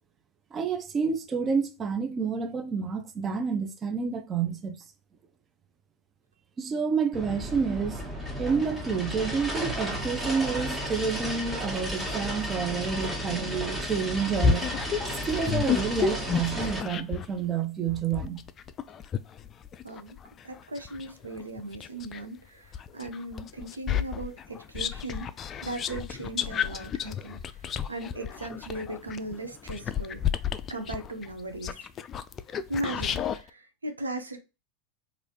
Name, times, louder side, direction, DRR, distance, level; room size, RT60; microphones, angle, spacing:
voice 1, 0.5-4.8 6.6-8.0 8.4-14.6 15.0-18.4, right 6 dB, 30° right, 0.6 m, -29 dB
sound 1, 7.1-16.8, equal, 10° right, 1.2 m, -33 dB
sound 2, 14.4-17.3 17.9-22.2 22.7-33.4, left 7 dB, 35° left, 0.3 m, -31 dB
voice 2, 19.8-20.2 20.4-30.2 30.7-31.9 32.7-34.4, right 1 dB, 85° right, 0.5 m, -37 dB
3.1 x 2.6 x 2.7 m
figure-of-eight pair, 85°, 0 cm